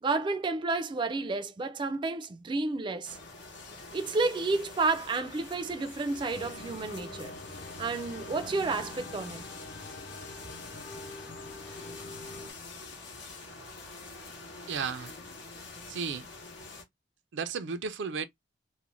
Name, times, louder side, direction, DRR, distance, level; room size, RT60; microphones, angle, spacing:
voice 1, 0.0-3.2 3.9-7.3 7.8-9.4, right 3 dB, 25° right, 0.3 m, -31 dB
sound 1, 3.0-16.8, left 3 dB, 85° left, 0.8 m, -46 dB
sound 2, 6.3-12.5, left 2 dB, 55° left, 0.7 m, -45 dB
voice 2, 14.7-15.1 15.9-16.3 17.3-18.3, right 6 dB, 90° right, 0.4 m, -34 dB
2.4 x 2.1 x 2.9 m
head